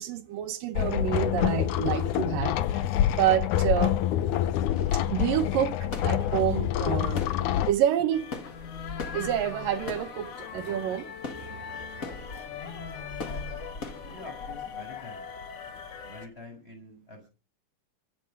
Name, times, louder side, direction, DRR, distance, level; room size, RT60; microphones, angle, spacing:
voice 1, 0.0-2.8 3.1-4.0 4.9-7.3 7.7-8.3 9.1-11.1, right 11 dB, 70° right, 2.5 m, -28 dB
sound 1, 0.8-7.7, left 11 dB, 70° left, 1.9 m, -26 dB
sound 2, 4.7-14.8, left 4 dB, 40° left, 1.2 m, -42 dB
sound 3, 8.1-16.3, left 7 dB, 55° left, 3.0 m, -40 dB
voice 2, 14.0-15.3 16.0-17.3, left 2 dB, 15° left, 7.0 m, -46 dB
24.5 x 9.1 x 5.3 m
omnidirectional pair, 4.4 m